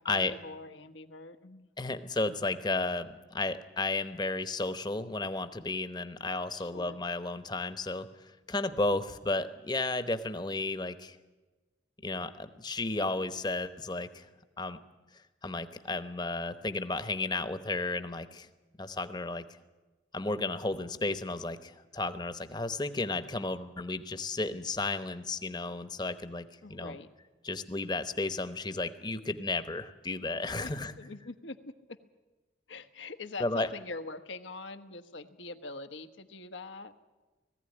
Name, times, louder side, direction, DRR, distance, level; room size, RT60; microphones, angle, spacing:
voice 1, 0.0-1.7 6.6-7.0 26.6-27.1 30.6-31.7 32.7-36.9, left 3 dB, 85° left, 8 dB, 1.2 m, -43 dB
voice 2, 1.8-11.2 12.0-14.3 14.6-14.8 15.4-18.5 18.8-19.4 20.1-26.4 26.7-27.0 27.4-30.9 33.4-33.7, left 2 dB, 20° left, 11 dB, 0.9 m, -33 dB
19.5 x 15.0 x 9.9 m, 1.2 s
head